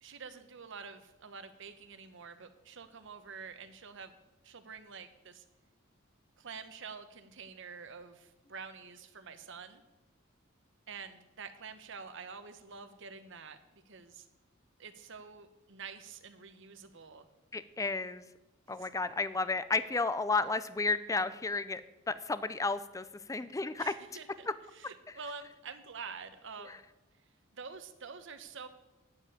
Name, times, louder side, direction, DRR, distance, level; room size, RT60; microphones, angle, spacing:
voice 1, 0.0-4.1 4.4-5.4 6.4-9.8 10.9-13.6 13.9-14.3 14.8-17.3 18.7-18.9 23.8-24.5 24.7-26.8 27.5-28.7, right 5 dB, 65° right, 10 dB, 1.0 m, -47 dB
voice 2, 17.5-18.2 18.7-21.8 22.1-23.9 26.7-26.8, left 3 dB, 15° left, 14 dB, 0.5 m, -32 dB
9.2 x 7.6 x 8.5 m, 0.99 s
head